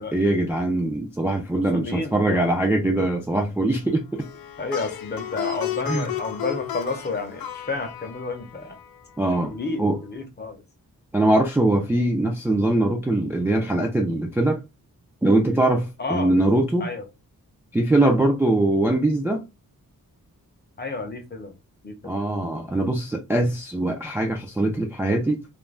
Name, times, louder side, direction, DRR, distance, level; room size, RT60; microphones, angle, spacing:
voice 1, 0.0-4.2 5.9-6.1 9.2-9.5 9.8-10.0 11.1-14.6 15.2-16.9 17.7-19.4 22.0-25.4, right 1 dB, 5° right, 0.3 m, -22 dB
voice 2, 1.5-2.5 4.6-8.8 9.5-10.6 16.0-16.3 16.8-17.1 20.8-21.5 21.8-22.2, left 3 dB, 30° left, 0.6 m, -31 dB
Plucked string instrument, 4.2-9.4, left 11 dB, 90° left, 0.5 m, -34 dB
2.5 x 2.1 x 3.1 m
wide cardioid pair, 170°, 35 cm